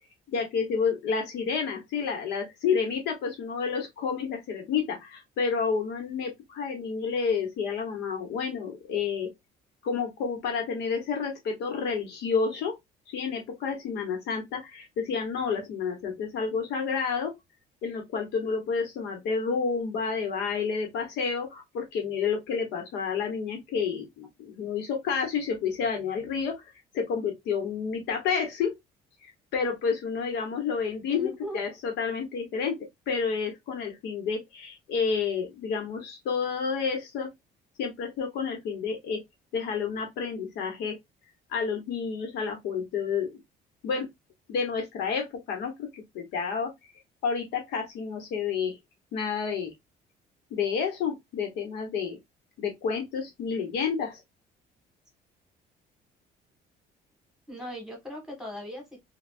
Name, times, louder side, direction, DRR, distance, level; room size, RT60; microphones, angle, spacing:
voice 1, 0.3-9.3 9.8-12.8 13.1-17.3 17.8-28.8 29.2-37.3 37.8-39.2 39.5-41.0 41.5-43.3 43.8-44.1 44.5-45.9 46.1-46.7 47.2-48.8 49.1-49.7 50.5-52.2 52.6-54.2, left 5 dB, 80° left, 1.1 m, -30 dB
voice 2, 31.1-31.6 57.5-59.0, equal, 5° right, 1.5 m, -38 dB
3.3 x 2.3 x 2.5 m
cardioid pair, 110°, 17 cm